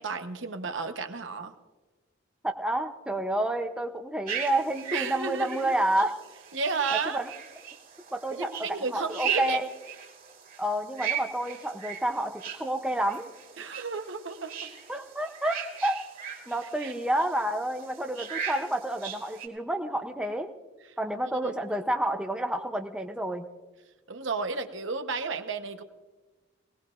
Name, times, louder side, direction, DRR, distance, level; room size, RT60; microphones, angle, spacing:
voice 1, 0.0-1.5 4.9-5.7 6.5-7.2 8.3-9.6 13.6-14.7 16.8-16.9 24.1-25.8, right 4 dB, 65° right, 7 dB, 1.0 m, -33 dB
voice 2, 2.4-6.1 7.1-7.3 8.1-9.7 10.6-13.3 14.9-16.0 16.5-20.5 21.0-23.5, right 1 dB, 5° right, 4 dB, 0.6 m, -29 dB
sound 1, 4.3-19.5, right 8 dB, 45° right, 2.5 m, -38 dB
20.5 x 18.5 x 2.5 m, 1.2 s
head